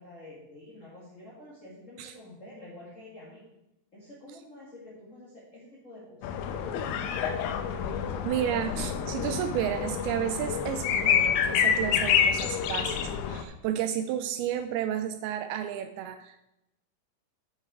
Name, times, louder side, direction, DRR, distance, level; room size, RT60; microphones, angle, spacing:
voice 1, 0.0-3.4 3.9-6.3 6.8-8.3, left 1 dB, 50° left, -7 dB, 0.8 m, -48 dB
sound 1, 6.2-13.4, left 8 dB, 90° left, 2.7 m, -28 dB
voice 2, 8.3-16.4, right 10 dB, 85° right, 9 dB, 2.4 m, -32 dB
9.7 x 5.7 x 4.7 m, 0.87 s
omnidirectional pair, 4.6 m